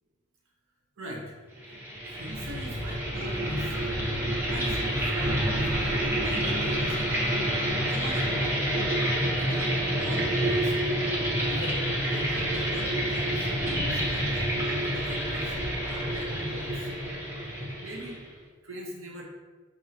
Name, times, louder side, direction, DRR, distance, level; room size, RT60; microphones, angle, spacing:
voice 1, 1.0-1.3 2.1-4.1 4.5-7.2 7.9-8.5 9.4-9.7 10.0-10.8 11.5-13.5 13.9-15.6 15.9-16.9 17.8-18.2 18.6-19.2, equal, 75° right, -2 dB, 0.8 m, -40 dB
sound 1, 1.6-18.3, equal, 10° right, 0.7 m, -28 dB
4.7 x 2.6 x 2.8 m, 1.3 s
head